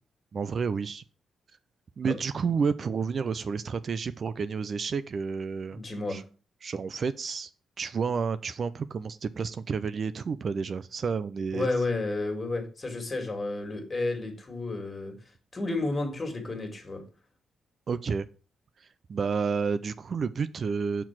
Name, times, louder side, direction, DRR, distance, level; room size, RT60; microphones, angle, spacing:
voice 1, 0.3-1.0 2.0-5.8 6.1-6.2 6.6-7.5 7.8-11.7 17.9-18.3 18.8-21.1, right 5 dB, 50° right, 14 dB, 0.4 m, -30 dB
voice 2, 5.7-6.2 11.5-15.2 15.5-17.0, left 2 dB, 30° left, 4 dB, 2.2 m, -31 dB
5.8 x 4.6 x 6.0 m, 0.35 s
cardioid pair, 90°, 0 cm